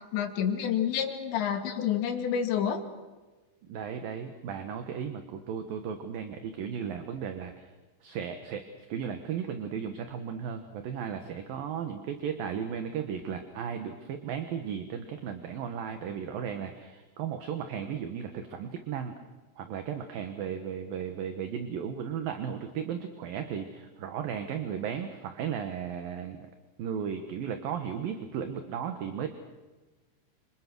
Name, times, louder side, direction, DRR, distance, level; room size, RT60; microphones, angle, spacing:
voice 1, 0.1-2.8, left 8 dB, 70° left, 4 dB, 4.2 m, -28 dB
voice 2, 3.7-7.7 8.0-8.6 8.9-19.1 19.6-26.4 26.8-29.3, right 8 dB, 60° right, 7 dB, 2.6 m, -35 dB
29.0 x 26.5 x 6.2 m, 1.2 s
omnidirectional pair, 5.6 m